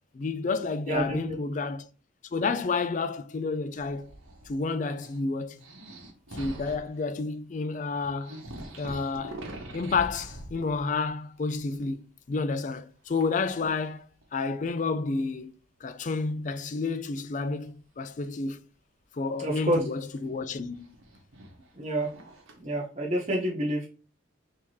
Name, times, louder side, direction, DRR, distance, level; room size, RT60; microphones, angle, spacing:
voice 1, 0.1-1.9 2.3-4.1 4.5-5.6 6.3-8.4 8.8-9.4 9.7-14.1 14.3-15.5 15.8-18.6 19.1-20.9, left 4 dB, 40° left, 0.4 m, -30 dB
voice 2, 0.9-1.2 19.4-19.8 21.8-22.1 22.6-23.9, right 1 dB, 35° right, 0.9 m, -28 dB
sound 1, 3.7-4.6 4.9-7.0 7.7-7.8 8.0-11.1 11.4-11.9 13.1-13.5 14.2-14.3 16.2-16.3 19.4-22.6, right 1 dB, 90° right, 1.1 m, -44 dB
3.6 x 2.8 x 4.5 m
head